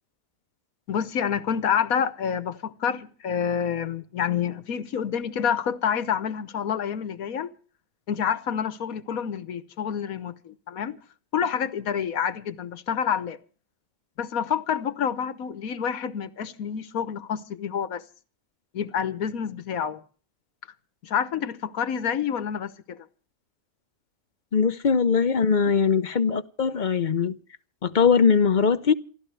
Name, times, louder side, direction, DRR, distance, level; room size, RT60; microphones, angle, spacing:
voice 1, 0.9-7.5 8.1-11.0 11.3-13.4 14.2-18.0 18.7-20.0 21.0-23.0, left 8 dB, 75° left, 1.4 m, -28 dB
voice 2, 24.5-27.4 27.8-28.9, left 6 dB, 40° left, 0.8 m, -21 dB
28.0 x 12.5 x 3.3 m
omnidirectional pair, 1.5 m